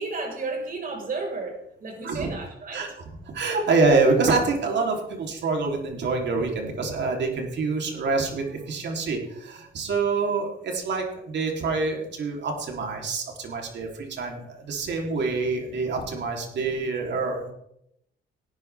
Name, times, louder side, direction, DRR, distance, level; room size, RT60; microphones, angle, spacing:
voice 1, 0.0-2.9, right 3 dB, 45° right, 1 dB, 4.9 m, -33 dB
voice 2, 3.3-17.5, right 3 dB, 60° right, 1 dB, 3.4 m, -26 dB
17.5 x 10.5 x 3.5 m, 0.77 s
cardioid pair, 90°, 20 cm